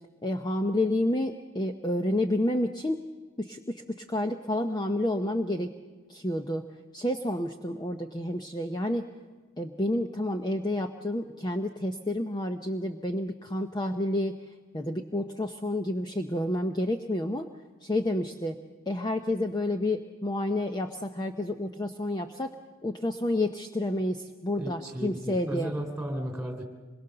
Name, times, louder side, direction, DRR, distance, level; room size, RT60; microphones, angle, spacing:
voice 1, 0.2-3.0 3.4-5.7 6.1-6.6 6.9-9.1 9.6-14.3 14.7-17.5 17.8-18.6 18.9-22.5 22.8-25.7, left 1 dB, 20° left, 5 dB, 0.7 m, -29 dB
voice 2, 24.6-26.6, equal, 5° right, 3 dB, 3.3 m, -34 dB
25.5 x 22.0 x 6.7 m, 1.4 s
head